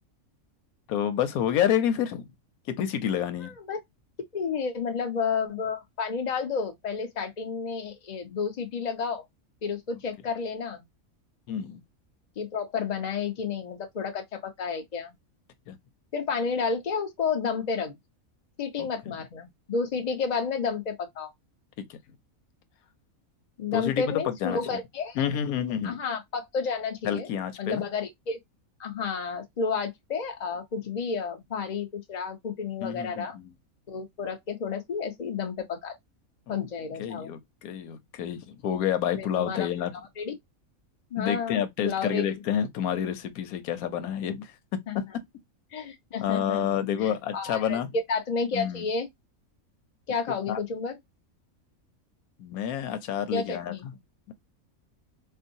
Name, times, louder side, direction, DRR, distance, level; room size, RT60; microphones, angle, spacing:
voice 1, 0.9-2.3 2.7-3.5 11.5-11.8 15.7-15.8 18.8-19.2 21.8-22.2 23.7-24.8 25.2-26.0 27.0-27.8 32.8-33.5 36.5-36.6 37.0-39.9 41.2-45.0 46.2-47.9 48.5-48.8 50.5-50.6 52.4-53.9 54.3-54.4, left 9 dB, 90° left, 1.1 m, -29 dB
voice 2, 3.4-3.8 4.3-9.2 9.6-10.8 12.4-15.1 16.1-18.0 18.6-21.3 23.6-25.2 25.8-27.3 27.6-28.4 28.8-33.4 33.9-36.0 36.5-37.3 39.2-39.7 40.2-40.3 41.1-42.2 44.9-45.0 45.7-47.8 48.1-49.1 50.1-51.0 53.3-53.9, left 5 dB, 35° left, 0.8 m, -31 dB
4.5 x 2.0 x 2.6 m
omnidirectional pair, 1.5 m